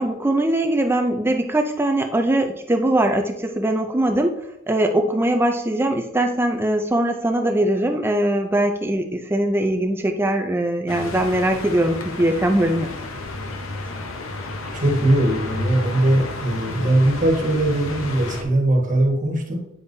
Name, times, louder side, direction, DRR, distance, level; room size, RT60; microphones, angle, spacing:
voice 1, 0.0-4.3 4.7-12.9, right 1 dB, 10° right, 5 dB, 0.4 m, -21 dB
sound 1, 10.9-18.4, left 2 dB, 85° left, 0.8 m, -31 dB
voice 2, 14.7-19.6, right 1 dB, 40° right, 0 dB, 1.4 m, -20 dB
8.5 x 5.3 x 2.7 m, 0.84 s
head